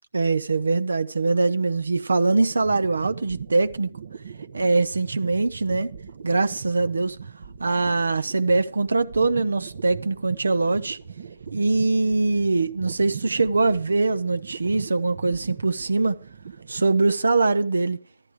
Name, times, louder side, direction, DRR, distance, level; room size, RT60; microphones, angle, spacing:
voice 1, 0.1-3.9 4.5-5.9 6.2-7.2 7.6-11.0 11.5-16.2 16.7-18.0, right 3 dB, 80° right, 0.7 m, -22 dB
sound 1, 2.0-17.3, right 7 dB, 60° right, 1.0 m, -40 dB
14.0 x 12.0 x 4.7 m
figure-of-eight pair, 145°, 0 cm